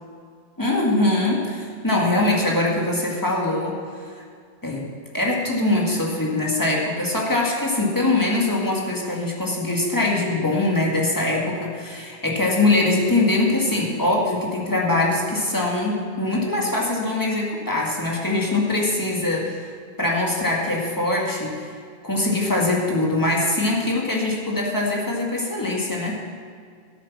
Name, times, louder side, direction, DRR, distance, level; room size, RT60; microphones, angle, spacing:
voice 1, 0.6-3.8 4.6-4.9 5.1-19.7 20.0-21.7 22.0-26.2, left 2 dB, 20° left, -3 dB, 1.9 m, -22 dB
13.5 x 8.3 x 6.0 m, 2.1 s
omnidirectional pair, 1.1 m